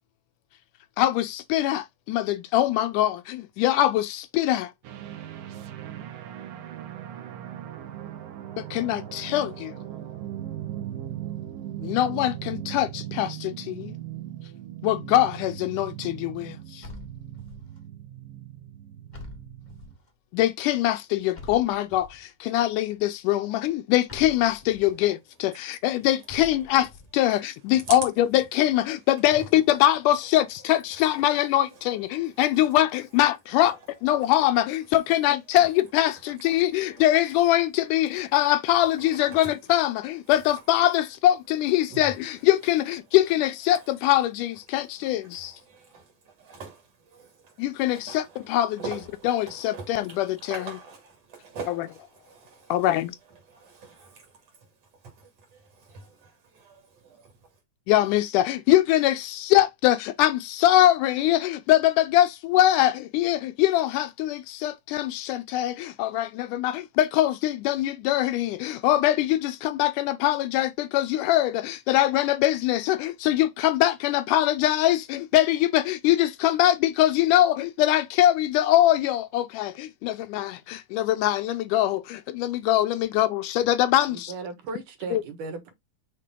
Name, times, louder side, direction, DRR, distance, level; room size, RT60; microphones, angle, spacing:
voice 1, 1.0-4.7 8.6-9.8 11.8-13.9 14.8-16.9 20.3-28.1 28.3-33.7 34.0-45.5 47.6-48.2 48.5-48.8 49.6-50.3 52.7-53.1 57.9-84.3 85.1-85.2, left 13 dB, 80° left, 2.1 m, -23 dB
sound 1, 4.8-20.0, right 11 dB, 90° right, 2.8 m, -38 dB
sound 2, 16.8-17.8 19.1-20.1 21.3-22.3 24.1-24.9 26.3-27.1, left 2 dB, 40° left, 0.6 m, -45 dB
voice 2, 25.5-26.0 27.2-27.4 27.8-28.0 29.0-29.1 29.4-29.7 30.0-30.3 30.6-32.8 33.5-34.3 34.8-35.0 35.5-35.8 36.1-37.1 38.1-39.6 40.2-40.7 41.9-43.4 43.7-44.0 44.7-57.6, right 4 dB, 55° right, 2.9 m, -45 dB
voice 3, 84.1-85.7, right 3 dB, 70° right, 2.9 m, -36 dB
6.6 x 4.3 x 3.7 m
omnidirectional pair, 3.8 m